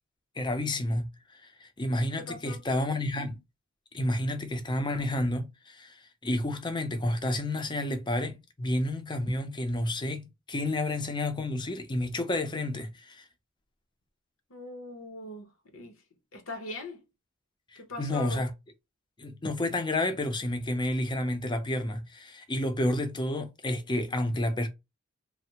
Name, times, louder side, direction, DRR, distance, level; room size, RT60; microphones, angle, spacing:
voice 1, 0.4-3.4 3.9-13.3 17.7-18.5 19.2-24.7, left 1 dB, 25° left, 0.5 m, -30 dB
voice 2, 2.2-2.6 14.5-16.0 16.3-17.0 17.8-18.4, left 2 dB, 75° left, 0.9 m, -41 dB
3.2 x 2.1 x 2.8 m
head